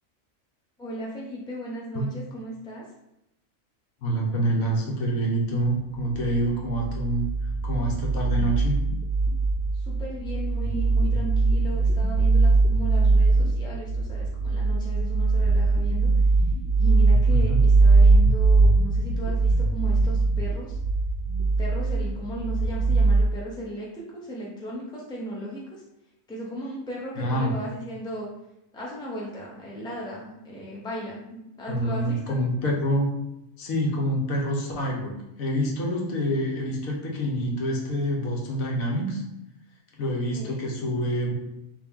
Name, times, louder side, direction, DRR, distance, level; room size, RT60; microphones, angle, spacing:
voice 1, 0.8-2.8 9.7-16.1 16.8-20.8 21.6-25.8 26.3-28.3 28.7-32.4 40.3-40.6, equal, 5° left, -4 dB, 0.5 m, -36 dB
voice 2, 4.0-7.3 7.6-8.8 17.3-17.6 27.2-27.6 31.7-33.1 33.6-39.2 40.0-41.3, equal, 85° left, -2 dB, 1.3 m, -26 dB
sound 1, 6.1-23.2, right 3 dB, 75° right, 1.0 m, -21 dB
3.5 x 2.6 x 3.5 m, 0.88 s
omnidirectional pair, 1.4 m